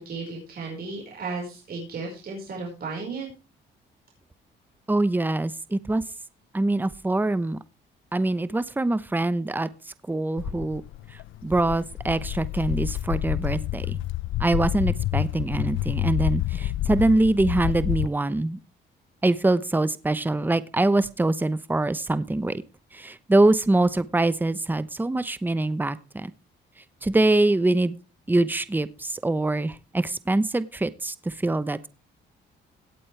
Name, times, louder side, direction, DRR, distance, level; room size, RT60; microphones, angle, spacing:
voice 1, 0.0-3.3, right 4 dB, 50° right, -1 dB, 4.8 m, -34 dB
voice 2, 4.9-6.0 6.5-7.6 8.1-9.7 10.1-10.8 11.4-14.0 14.4-18.6 19.2-22.6 22.9-26.3 27.0-28.0 28.3-31.9, right 2 dB, 10° right, 15 dB, 0.8 m, -24 dB
Walk footsteps, 10.4-18.1, left 14 dB, 80° left, 0.5 m, -28 dB
17.5 x 8.5 x 3.3 m, 0.31 s
cardioid pair, 90°, 20 cm